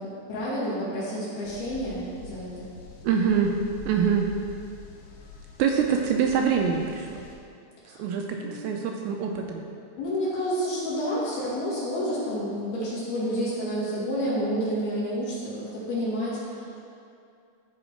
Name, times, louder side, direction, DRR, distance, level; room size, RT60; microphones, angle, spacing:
voice 1, 0.0-2.7 7.9-8.0 8.4-8.5 10.0-16.8, equal, 55° left, -9 dB, 3.8 m, -29 dB
sound 1, 1.5-7.4, left 4 dB, 80° left, 2.1 m, -46 dB
voice 2, 3.0-3.5 3.9-4.3 5.6-7.2 8.0-9.6, right 7 dB, 80° right, 2 dB, 2.8 m, -25 dB
14.5 x 5.1 x 4.5 m, 2.4 s
omnidirectional pair, 5.5 m